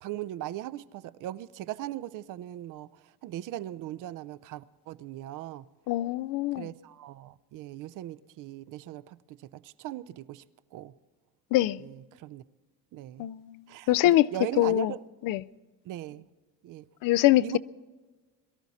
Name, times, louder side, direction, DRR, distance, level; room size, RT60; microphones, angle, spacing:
voice 1, 0.0-5.7 6.6-10.4 10.7-10.9 11.8-12.4 12.9-13.3 13.7-15.0 15.9-16.3 16.6-16.8 17.4-17.6, right 14 dB, 60° right, 0.6 m, -39 dB
voice 2, 5.9-6.7 11.5-11.8 13.2-13.5 13.9-14.3 14.6-14.9 15.2-15.4 17.0-17.6, left 15 dB, 65° left, 0.5 m, -23 dB
22.5 x 13.0 x 4.1 m
cardioid pair, 170°, 35 cm